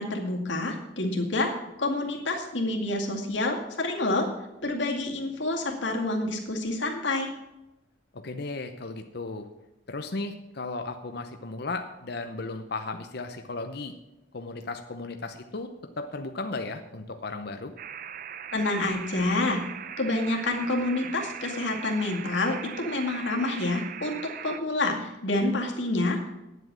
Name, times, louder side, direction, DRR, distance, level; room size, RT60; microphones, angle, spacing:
voice 1, 0.0-1.5 1.8-4.3 4.6-7.3 18.5-19.6 20.0-26.4, left 2 dB, 75° left, 1 dB, 2.2 m, -28 dB
voice 2, 8.1-9.5 9.9-13.9 14.3-17.7, left 3 dB, 55° left, 6 dB, 0.7 m, -35 dB
sound 1, 17.8-24.6, right 8 dB, 50° right, 0.5 m, -40 dB
9.7 x 8.0 x 7.5 m, 0.97 s
head